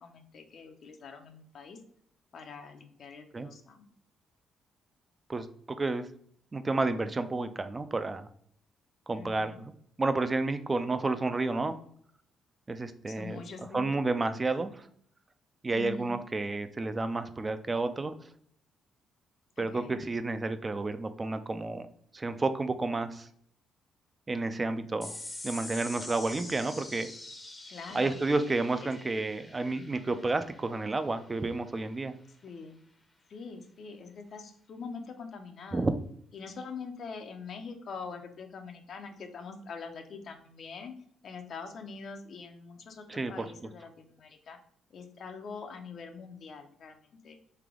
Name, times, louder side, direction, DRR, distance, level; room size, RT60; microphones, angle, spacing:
voice 1, 0.0-1.8 2.3-3.9 9.1-9.6 13.1-13.9 15.7-16.1 19.6-20.0 27.7-28.4 28.6-28.9 32.4-32.8 33.3-35.9 36.3-40.9 41.2-44.6 44.9-47.4, left 5 dB, 60° left, 5 dB, 0.6 m, -44 dB
voice 2, 5.3-6.1 6.5-8.3 9.1-9.7 10.0-11.8 12.7-13.4 13.7-14.9 15.6-18.1 19.6-21.9 22.1-23.3 24.3-25.2 25.4-27.1 27.9-32.2 35.7-35.9 43.1-43.5, right 3 dB, 25° right, 11 dB, 0.4 m, -31 dB
sound 1, 25.0-31.8, left 2 dB, 15° left, 0.6 m, -45 dB
3.3 x 2.9 x 3.6 m, 0.63 s
cardioid pair, 90°, 0 cm